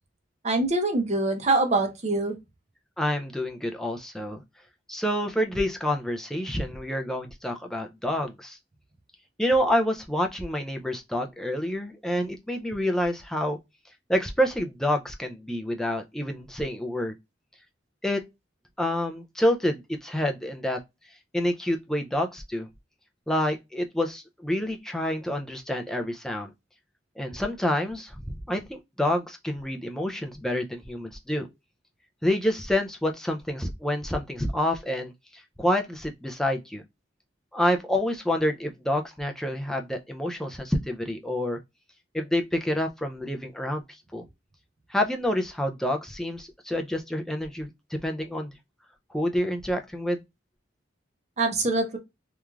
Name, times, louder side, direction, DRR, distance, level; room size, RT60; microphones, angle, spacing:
voice 1, 0.4-2.3 51.4-52.0, right 2 dB, 35° right, 0.6 m, -24 dB
voice 2, 3.0-4.4 4.9-8.6 9.4-13.6 14.1-17.1 18.0-18.2 18.8-20.8 21.1-22.7 23.3-26.5 27.2-31.5 32.2-36.8 37.5-41.6 42.1-44.3 44.9-47.7 48.0-48.6 49.1-50.2, left 1 dB, 5° left, 0.3 m, -28 dB
3.1 x 2.3 x 2.3 m
head